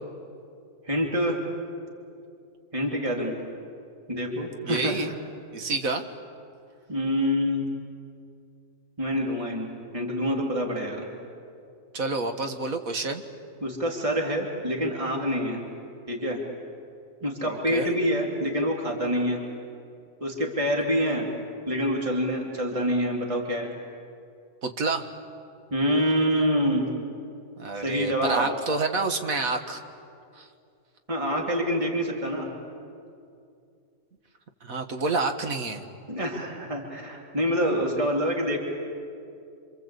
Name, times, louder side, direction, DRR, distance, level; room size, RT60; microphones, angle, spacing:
voice 1, 0.8-1.4 2.7-3.3 4.1-4.9 6.9-7.7 9.0-11.1 13.6-15.6 16.1-16.4 17.2-19.4 20.2-21.3 21.7-23.7 25.7-26.9 27.8-28.5 31.1-32.5 36.1-38.6, equal, 20° right, 0 dB, 2.9 m, -26 dB
voice 2, 4.6-5.1 5.5-6.0 11.9-13.2 17.4-17.9 24.6-25.1 27.6-29.8 30.4-30.5 34.6-35.8, right 3 dB, 60° right, 6 dB, 2.0 m, -28 dB
27.0 x 27.0 x 8.3 m, 2.5 s
omnidirectional pair, 1.6 m